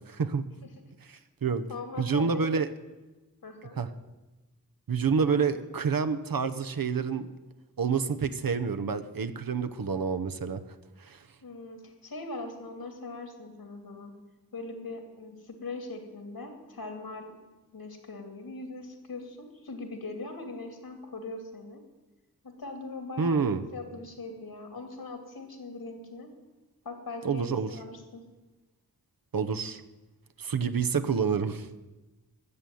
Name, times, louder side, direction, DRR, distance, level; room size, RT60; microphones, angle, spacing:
voice 1, 0.1-0.5 1.1-1.6 2.0-2.7 3.8-3.9 4.9-7.3 7.8-10.6 11.0-11.2 23.2-23.6 27.2-27.7 29.3-29.8 30.4-31.7, right 5 dB, 65° right, 10 dB, 0.9 m, -28 dB
voice 2, 1.7-2.6 3.4-3.8 5.3-5.4 11.4-14.1 14.5-17.3 17.7-21.8 22.4-23.5 23.7-26.3 26.8-28.2, left 3 dB, 75° left, 6 dB, 2.6 m, -40 dB
13.5 x 7.0 x 9.2 m, 1.1 s
cardioid pair, 45°, 37 cm